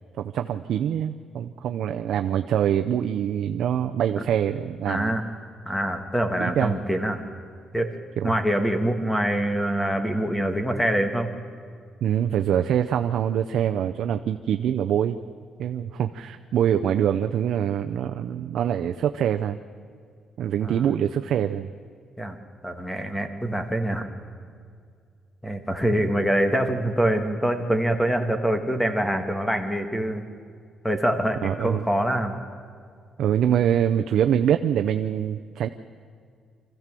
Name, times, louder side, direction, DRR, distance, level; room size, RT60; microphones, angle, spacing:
voice 1, 0.2-5.2 6.4-6.7 8.2-8.4 12.0-15.2 15.6-19.6 20.4-21.7 31.4-31.8 33.2-35.7, right 9 dB, 65° right, 7 dB, 0.6 m, -24 dB
voice 2, 4.9-5.3 5.7-7.2 7.7-7.9 8.2-11.3 20.6-20.8 22.2-22.4 22.6-24.1 25.4-30.2 30.8-32.4, right 1 dB, 5° left, 7 dB, 1.5 m, -25 dB
25.5 x 14.5 x 7.6 m, 2.1 s
cardioid pair, 165°, 0 cm